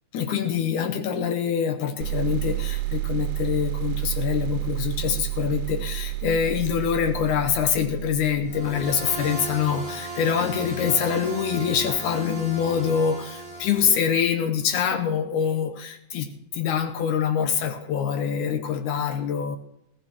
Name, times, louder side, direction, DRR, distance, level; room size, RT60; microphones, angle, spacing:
voice 1, 0.1-19.6, left 7 dB, 80° left, 6 dB, 2.4 m, -25 dB
sound 1, 2.0-9.5, right 20 dB, 85° right, 2.2 m, -30 dB
sound 2, 8.5-14.3, right 2 dB, ahead, 7.6 m, -36 dB
20.5 x 15.5 x 3.0 m, 0.81 s
omnidirectional pair, 3.5 m